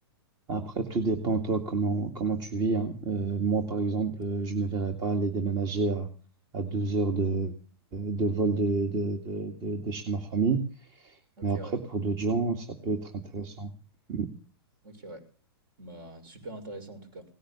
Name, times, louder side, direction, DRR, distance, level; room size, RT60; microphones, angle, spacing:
voice 1, 0.5-6.1 6.5-7.5 7.9-13.7 14.1-14.3, right 3 dB, 30° right, 6 dB, 2.1 m, -29 dB
voice 2, 11.4-11.8 14.8-15.2 15.8-17.2, right 2 dB, 55° right, 8 dB, 6.5 m, -43 dB
18.0 x 10.5 x 7.1 m, 0.40 s
hypercardioid pair, 130°, 13 cm